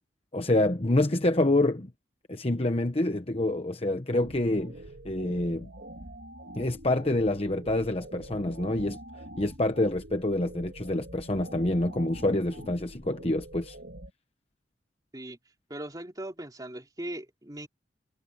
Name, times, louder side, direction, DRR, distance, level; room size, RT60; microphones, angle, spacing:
voice 1, 0.3-1.9 2.3-4.8 5.0-5.7 6.5-9.0 9.4-13.8, left 1 dB, 30° left, 1.1 m, -27 dB
sound 1, 4.1-14.1, right 1 dB, 65° right, 2.4 m, -45 dB
voice 2, 15.7-17.7, right 1 dB, 20° right, 2.9 m, -39 dB
head